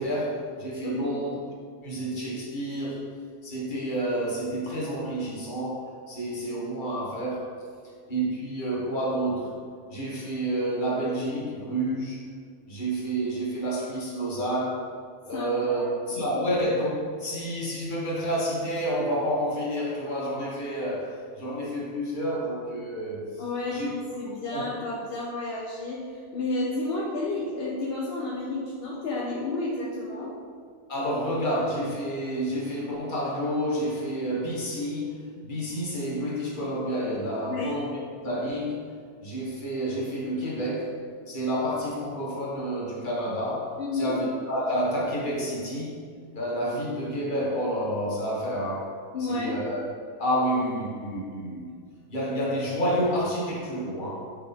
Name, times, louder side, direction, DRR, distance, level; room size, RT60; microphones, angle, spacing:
voice 1, 0.0-1.4 1.8-3.1 3.4-7.6 8.1-9.5 9.9-12.2 12.7-14.9 15.3-23.4 23.7-23.9 24.5-24.6 30.9-38.8 39.2-41.0 41.3-46.0 46.3-49.0 49.3-51.8 52.1-54.4, equal, 30° left, -5 dB, 1.3 m, -29 dB
voice 2, 0.8-1.2 15.3-15.9 23.4-30.3 37.4-37.7 43.8-44.2 49.1-49.6, left 2 dB, 55° left, -4 dB, 0.6 m, -31 dB
6.3 x 4.2 x 3.6 m, 2.1 s
omnidirectional pair, 1.7 m